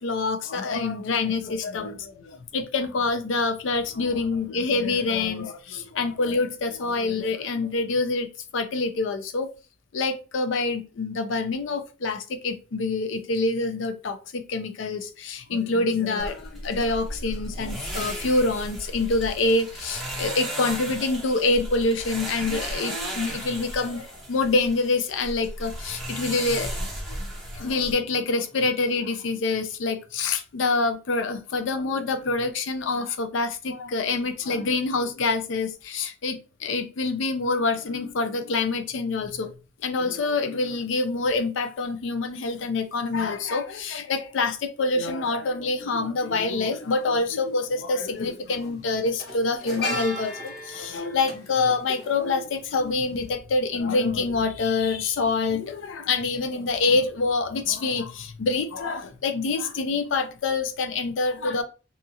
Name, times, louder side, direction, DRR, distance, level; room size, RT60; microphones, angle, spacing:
voice 1, 0.0-8.3 8.5-9.5 9.9-26.9 27.5-39.5 39.8-61.6, left 3 dB, 75° left, 9 dB, 0.4 m, -26 dB
sound 1, 16.2-27.9, right 1 dB, ahead, 0.8 m, -35 dB
sound 2, 46.7-46.8 48.0-48.3 48.5-52.8 53.1-53.3, left 1 dB, 55° left, 1.2 m, -36 dB
2.7 x 2.3 x 2.7 m, 0.34 s
head